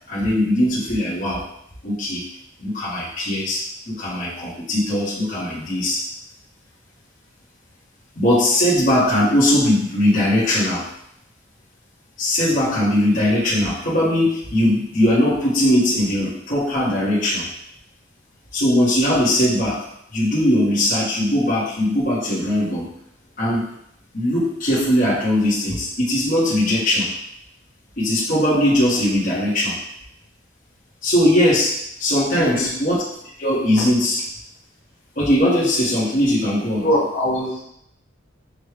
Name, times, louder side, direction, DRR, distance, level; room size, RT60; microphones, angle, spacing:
voice 1, 0.1-1.4 1.8-2.2 2.6-6.0 8.1-10.8 12.2-17.5 18.5-19.8 20.1-22.9 23.4-23.7 24.1-27.1 28.0-29.8 31.0-31.7 32.0-33.0 33.4-34.2 35.1-36.9, left 1 dB, 45° left, -8 dB, 1.2 m, -20 dB
voice 2, 32.3-32.7 36.8-37.6, equal, 85° left, -5 dB, 1.6 m, -22 dB
6.3 x 2.3 x 3.3 m, 0.74 s
head